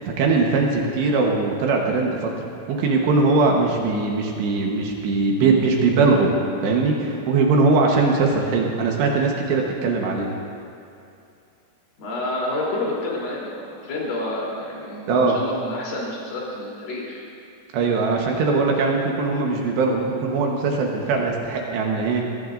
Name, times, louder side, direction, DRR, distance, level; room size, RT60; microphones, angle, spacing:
voice 1, 0.0-2.3 2.7-6.3 6.6-10.3 15.1-15.4 17.7-22.2, right 3 dB, 70° right, 0 dB, 3.1 m, -20 dB
voice 2, 12.0-17.2, left 2 dB, 50° left, -5 dB, 4.9 m, -29 dB
22.5 x 17.0 x 2.6 m, 2.6 s
omnidirectional pair, 5.7 m